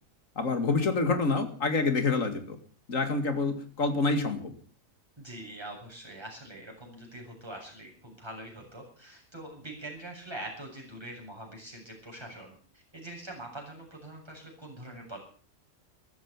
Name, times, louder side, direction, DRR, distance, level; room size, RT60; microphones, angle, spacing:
voice 1, 0.4-2.6 2.9-4.6, left 3 dB, 70° left, 9 dB, 2.5 m, -27 dB
voice 2, 5.2-15.2, right 1 dB, 20° right, -1 dB, 7.4 m, -44 dB
14.5 x 14.0 x 7.1 m, 0.43 s
omnidirectional pair, 1.4 m